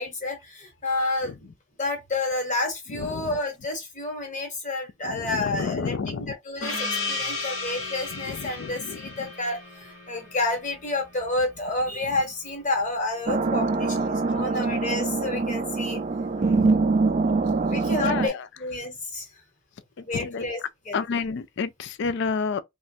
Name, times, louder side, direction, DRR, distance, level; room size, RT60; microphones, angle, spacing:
voice 1, 0.0-1.5 1.8-16.0 17.6-19.3 20.0-20.6 20.8-21.2, left 2 dB, 40° left, 1.3 m, -30 dB
voice 2, 2.9-3.4 5.0-6.3 8.1-9.3 16.4-16.8 17.4-17.5 18.0-18.4 20.1-20.5 20.9-22.6, left 5 dB, 55° left, 0.3 m, -30 dB
Gong, 6.6-11.7, left 3 dB, 85° left, 1.2 m, -34 dB
sound 1, 13.3-18.3, right 3 dB, 35° right, 0.3 m, -24 dB
3.1 x 2.4 x 2.6 m
head